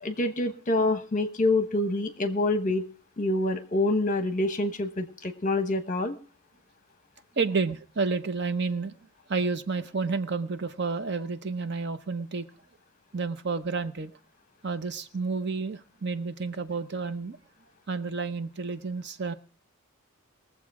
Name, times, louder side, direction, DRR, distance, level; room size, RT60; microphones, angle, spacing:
voice 1, 0.0-2.8 3.2-6.1, left 2 dB, 35° left, 10 dB, 1.1 m, -26 dB
voice 2, 7.4-8.9 9.3-12.5 13.1-14.1 14.6-17.4 17.9-19.3, right 4 dB, 50° right, 12 dB, 0.8 m, -30 dB
20.5 x 7.5 x 4.8 m, 0.43 s
head